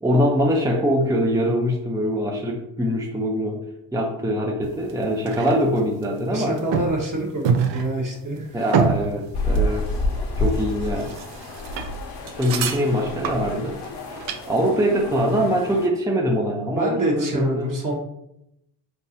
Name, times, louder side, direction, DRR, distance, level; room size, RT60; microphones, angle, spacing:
voice 1, 0.0-3.6 3.9-6.6 8.5-9.9 10.4-11.1 12.4-13.8 14.1-14.2 14.5-17.8, equal, 5° right, -1 dB, 0.7 m, -23 dB
sound 1, 4.6-14.4, right 6 dB, 70° right, 0.6 m, -28 dB
voice 2, 6.3-8.8 16.7-18.0, right 1 dB, 45° right, -1 dB, 1.6 m, -27 dB
sound 2, 9.3-15.9, left 1 dB, 60° left, 1.0 m, -29 dB
4.6 x 3.5 x 2.8 m, 0.82 s
supercardioid pair, 55°, 46 cm